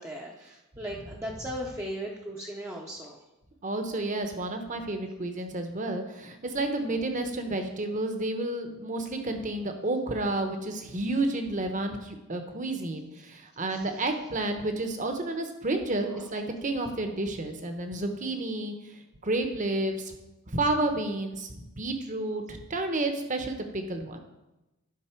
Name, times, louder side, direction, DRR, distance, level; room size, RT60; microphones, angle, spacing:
voice 1, 0.0-3.2 13.7-14.0 16.1-16.2, equal, 15° right, -2 dB, 0.7 m, -38 dB
voice 2, 3.6-18.7 19.2-20.1 20.5-24.2, right 2 dB, 35° right, 6 dB, 0.9 m, -31 dB
11.0 x 5.5 x 4.5 m, 0.98 s
head